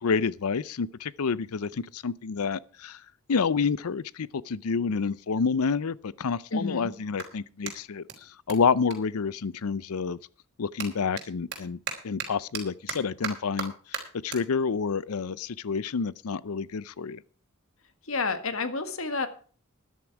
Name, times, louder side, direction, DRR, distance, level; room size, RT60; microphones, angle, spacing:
voice 1, 0.0-3.0 3.3-10.2 10.6-11.8 12.0-17.2, left 5 dB, 85° left, 0.5 m, -29 dB
voice 2, 6.5-6.9 18.1-19.3, left 3 dB, 65° left, 1.7 m, -29 dB
Clapping, 7.1-9.9 10.2-16.8, right 6 dB, 50° right, 3.6 m, -41 dB
13.5 x 11.0 x 4.7 m
head